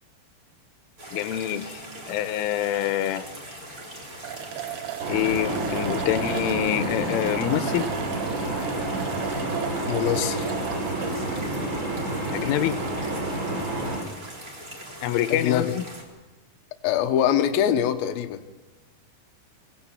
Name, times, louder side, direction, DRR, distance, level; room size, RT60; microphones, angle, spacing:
sound 1, 1.0-16.0, right 1 dB, 20° right, 3.4 m, -41 dB
voice 1, 1.1-3.3 5.1-7.9 12.3-12.8 15.0-15.8, left 12 dB, 85° left, 11 dB, 3.5 m, -26 dB
sound 2, 3.8-3.9 4.2-11.2, right 12 dB, 75° right, 3.5 m, -36 dB
sound 3, 5.0-14.0, right 1 dB, 55° right, 7.7 m, -29 dB
voice 2, 9.9-10.5 15.3-15.8 16.8-18.4, left 10 dB, 70° left, 5 dB, 2.5 m, -23 dB
24.5 x 18.0 x 7.5 m, 1.2 s
omnidirectional pair, 5.6 m